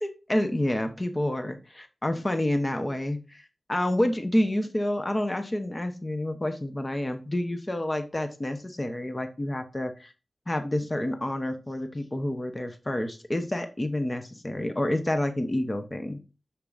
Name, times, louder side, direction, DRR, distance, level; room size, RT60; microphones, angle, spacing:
voice 1, 0.0-10.1 10.5-16.2, left 1 dB, 25° left, 7 dB, 0.9 m, -29 dB
6.8 x 5.9 x 2.5 m, 0.31 s
wide cardioid pair, 85°, 0 cm